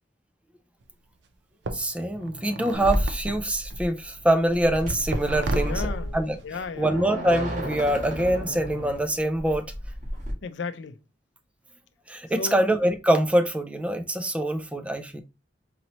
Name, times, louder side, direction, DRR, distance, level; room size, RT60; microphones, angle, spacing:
sound 1, 0.8-0.9 1.6-3.9 4.7-6.6, right 2 dB, 70° right, 0.5 m, -34 dB
voice 1, 1.7-5.8 6.1-6.4 6.8-9.7 12.1-15.2, right 1 dB, 5° right, 0.3 m, -24 dB
sound 2, 2.7-10.3, equal, 45° right, 1.5 m, -32 dB
voice 2, 5.7-6.2 6.4-7.1 10.4-11.0 12.4-12.6, left 4 dB, 75° left, 0.4 m, -34 dB
4.1 x 3.0 x 2.9 m
head